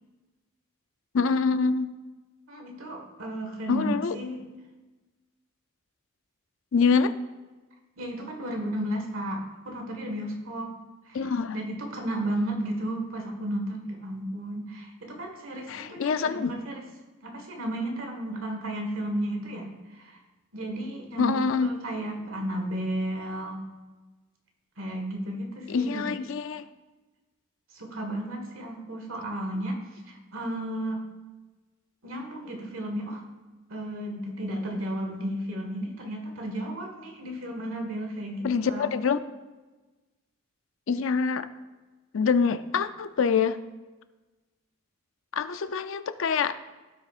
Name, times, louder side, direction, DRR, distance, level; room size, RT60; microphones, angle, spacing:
voice 1, 1.1-1.9 3.7-4.2 6.7-7.1 11.1-11.6 15.7-16.5 21.2-21.7 25.7-26.6 38.4-39.2 40.9-41.5 42.1-43.6 45.3-46.6, left 5 dB, 65° left, 11 dB, 0.5 m, -25 dB
voice 2, 2.5-4.5 8.0-10.7 11.1-16.9 17.2-20.2 20.5-23.6 24.8-26.2 27.7-31.0 32.0-33.2 33.7-38.9, right 1 dB, 70° right, 2 dB, 1.7 m, -33 dB
16.0 x 6.3 x 2.5 m, 1.2 s
head